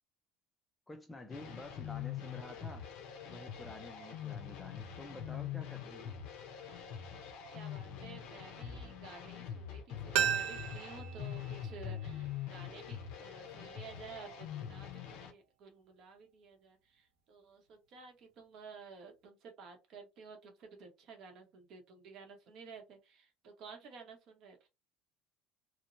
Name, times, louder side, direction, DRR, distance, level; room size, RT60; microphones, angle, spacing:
voice 1, 0.9-2.9 3.3-6.2, left 2 dB, 5° left, 0.3 m, -49 dB
sound 1, 1.3-15.3, left 9 dB, 65° left, 0.6 m, -44 dB
voice 2, 7.5-24.7, right 5 dB, 45° right, 0.8 m, -53 dB
sound 2, 10.1-12.9 13.2-13.3, right 9 dB, 70° right, 0.5 m, -36 dB
3.0 x 2.0 x 2.5 m
cardioid pair, 170°, 0 cm